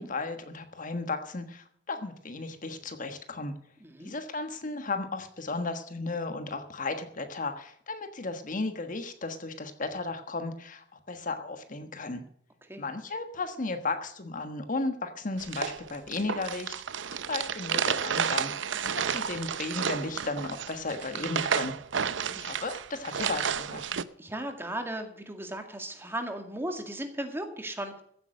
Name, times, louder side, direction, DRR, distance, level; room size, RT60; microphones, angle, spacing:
voice 1, 0.0-3.5 4.0-12.2 12.8-17.0 17.3-21.7 22.4-23.9, left 3 dB, 45° left, 8 dB, 1.4 m, -35 dB
voice 2, 3.8-4.1 12.7-12.9 22.3-22.4 24.2-28.0, right 1 dB, 15° right, 5 dB, 2.1 m, -36 dB
sound 1, 15.4-24.0, right 7 dB, 80° right, 0.7 m, -31 dB
15.5 x 8.9 x 6.4 m, 0.66 s
head